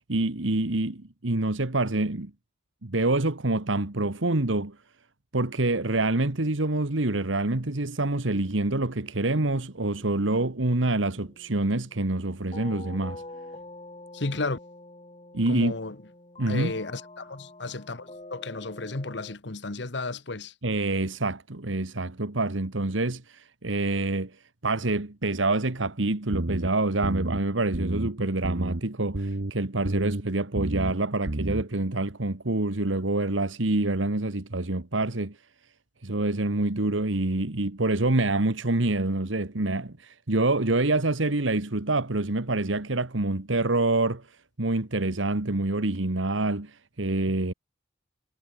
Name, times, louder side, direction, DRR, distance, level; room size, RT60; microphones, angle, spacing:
voice 1, 0.1-2.3 2.8-4.7 5.3-13.2 15.3-15.8 16.4-16.7 20.6-24.3 24.6-35.4 36.0-44.2 44.6-47.5, right 2 dB, 90° right, 1.7 m, -26 dB
sound 1, 10.0-19.4, left 2 dB, 30° left, 7.0 m, -46 dB
voice 2, 14.1-14.6 15.5-15.9 16.5-20.5, left 3 dB, 65° left, 1.3 m, -33 dB
sound 2, 26.3-26.7 27.0-27.4 27.7-28.1 28.4-28.8 29.1-29.5 29.8-30.2 30.5-30.9 31.3-31.6, right 1 dB, 70° right, 1.5 m, -30 dB
head